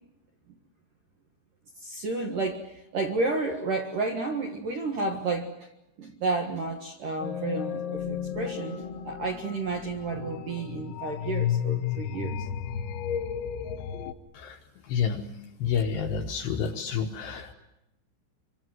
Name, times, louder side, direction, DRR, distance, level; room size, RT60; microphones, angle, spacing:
voice 1, 1.8-5.7 6.0-12.3, right 3 dB, 60° right, 3 dB, 2.3 m, -31 dB
sound 1, 7.2-14.1, left 9 dB, 85° left, 4.0 m, -33 dB
voice 2, 14.8-15.3 15.6-17.5, left 7 dB, 70° left, 4 dB, 2.7 m, -29 dB
26.5 x 25.0 x 7.8 m, 0.87 s
omnidirectional pair, 5.9 m